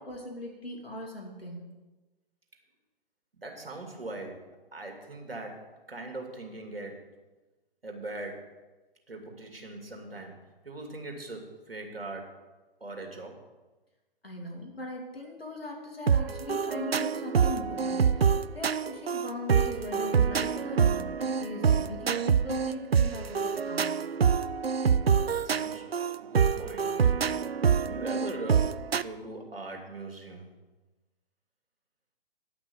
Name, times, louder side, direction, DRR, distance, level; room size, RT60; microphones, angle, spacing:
voice 1, 0.0-1.7 14.2-24.0, left 1 dB, 80° left, 0 dB, 3.3 m, -40 dB
voice 2, 3.4-7.0 7.8-8.5 9.1-10.4 10.6-12.3 12.8-13.4 25.2-25.8 26.2-27.1 27.9-30.5, right 2 dB, 75° right, 2 dB, 2.5 m, -41 dB
sound 1, 16.1-29.0, right 6 dB, 90° right, 0.4 m, -26 dB
10.0 x 6.1 x 7.8 m, 1.2 s
figure-of-eight pair, 130°, 29 cm